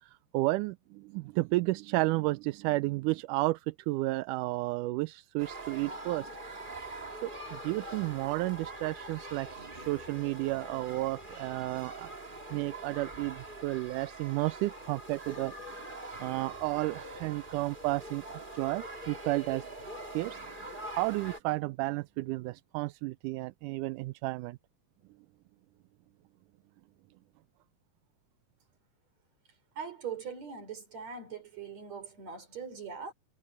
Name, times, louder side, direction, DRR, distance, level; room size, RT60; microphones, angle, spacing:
voice 1, 0.0-6.3 7.2-12.1 12.5-15.9 16.2-19.6 20.1-20.4 20.9-24.6, right 20 dB, 80° right, 2.0 m, -32 dB
sound 1, 5.4-21.4, right 2 dB, 15° right, 2.1 m, -44 dB
voice 2, 29.8-33.1, right 6 dB, 55° right, 5.5 m, -41 dB
omnidirectional pair, 3.8 m